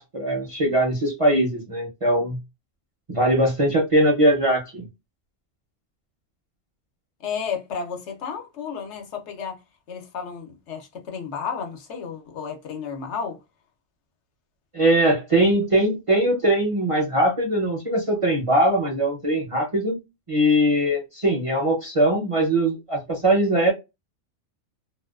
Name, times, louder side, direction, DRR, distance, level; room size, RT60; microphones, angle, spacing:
voice 1, 0.0-2.4 3.1-4.9 14.7-20.0 20.3-23.7, right 1 dB, 40° right, 0.5 m, -21 dB
voice 2, 7.2-9.6 9.9-13.4, left 6 dB, 70° left, 1.0 m, -32 dB
2.4 x 2.2 x 2.3 m
omnidirectional pair, 1.3 m